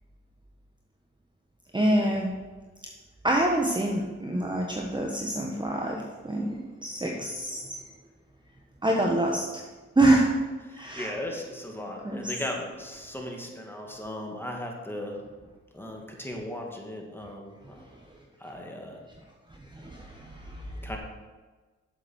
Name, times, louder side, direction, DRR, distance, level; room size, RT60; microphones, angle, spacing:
voice 1, 1.7-2.4 3.2-7.7 8.8-9.6 10.0-10.3 10.7-11.1 12.0-12.2 18.1-18.2 19.7-20.8, right 1 dB, 15° right, 0 dB, 1.3 m, -26 dB
voice 2, 10.6-15.2 15.7-17.8 18.4-19.0 20.8-21.0, left 1 dB, 5° left, 0 dB, 2.3 m, -37 dB
7.4 x 7.4 x 6.5 m, 1.3 s
cardioid pair, 65°, 30 cm